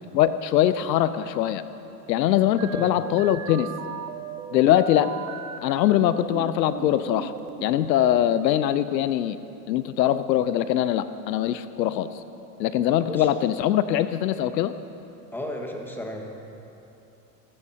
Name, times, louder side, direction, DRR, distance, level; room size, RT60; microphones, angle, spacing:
voice 1, 0.1-1.6 2.1-3.7 4.5-5.1 5.6-7.3 7.6-9.4 9.7-12.1 12.6-14.7, left 11 dB, 85° left, 13 dB, 0.7 m, -22 dB
sound 1, 2.6-5.6 6.1-7.7, right 8 dB, 65° right, 1.1 m, -38 dB
voice 2, 15.3-16.3, left 1 dB, 5° left, 1 dB, 1.6 m, -34 dB
19.0 x 16.5 x 2.9 m, 3.0 s
hypercardioid pair, 115°, 49 cm